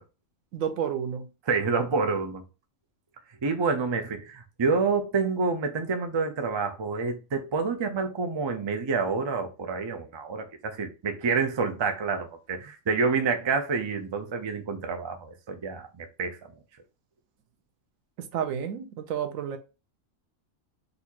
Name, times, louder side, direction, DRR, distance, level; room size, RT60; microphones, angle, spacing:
voice 1, 0.5-1.3 18.3-19.6, right 8 dB, 90° right, 1.1 m, -30 dB
voice 2, 1.5-2.4 3.4-16.4, right 4 dB, 40° right, 0.4 m, -28 dB
4.1 x 2.5 x 2.8 m
omnidirectional pair, 1.4 m